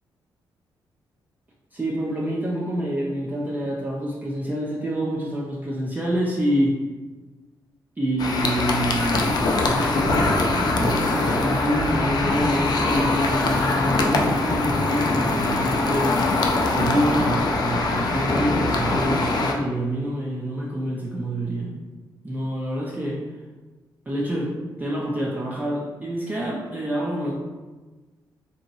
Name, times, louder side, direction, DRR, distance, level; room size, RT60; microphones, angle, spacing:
voice 1, 1.7-6.8 8.0-16.2 16.7-21.7 22.2-23.2 24.1-27.3, equal, 20° right, -4 dB, 0.4 m, -27 dB
sound 1, 8.2-19.5, left 2 dB, 55° left, 0.4 m, -22 dB
2.8 x 2.7 x 2.6 m, 1.3 s
cardioid pair, 75°, 9 cm